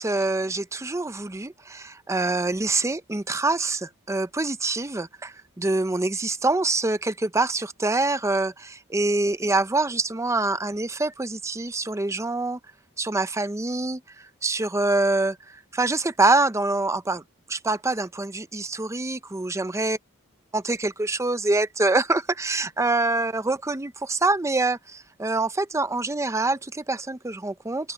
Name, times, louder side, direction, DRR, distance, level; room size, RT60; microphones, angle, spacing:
voice 1, 0.0-12.6 13.0-14.0 14.4-15.4 15.7-17.2 17.5-20.0 20.5-27.9, right 2 dB, 15° right, 0.6 m, -25 dB
head